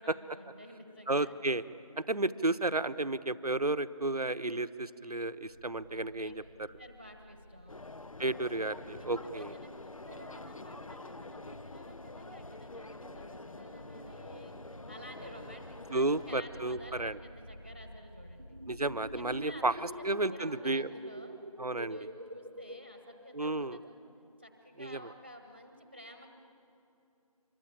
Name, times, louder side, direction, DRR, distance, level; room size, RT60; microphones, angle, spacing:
voice 1, 0.0-1.3 6.1-7.8 9.0-14.6 14.9-18.6 19.1-21.4 21.8-24.0 24.4-26.3, equal, 15° right, 5 dB, 1.2 m, -51 dB
voice 2, 1.1-1.6 2.0-6.3 8.2-9.5 15.9-17.2 18.7-20.9 21.6-22.0 23.3-23.8 24.8-25.0, right 2 dB, 85° right, 12 dB, 1.0 m, -32 dB
sound 1, 5.4-19.4, equal, 20° left, 1.4 m, -54 dB
sound 2, 7.7-16.4, left 2 dB, 65° left, 0.6 m, -47 dB
sound 3, 18.4-23.8, right 1 dB, 45° right, 1.0 m, -46 dB
26.5 x 23.0 x 8.9 m, 2.7 s
figure-of-eight pair, 180°, 19 cm